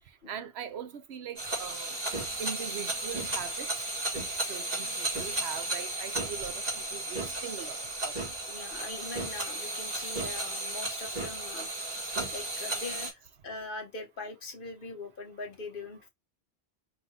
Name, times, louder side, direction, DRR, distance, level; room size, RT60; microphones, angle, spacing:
voice 1, 0.3-2.0 2.4-3.9 4.4-8.1, right 8 dB, 90° right, 1.0 m, -41 dB
sound 1, 1.4-13.1, right 2 dB, 40° right, 2.0 m, -34 dB
voice 2, 8.5-11.7 12.3-16.1, left 3 dB, 60° left, 1.2 m, -42 dB
4.8 x 3.5 x 2.7 m
omnidirectional pair, 1.0 m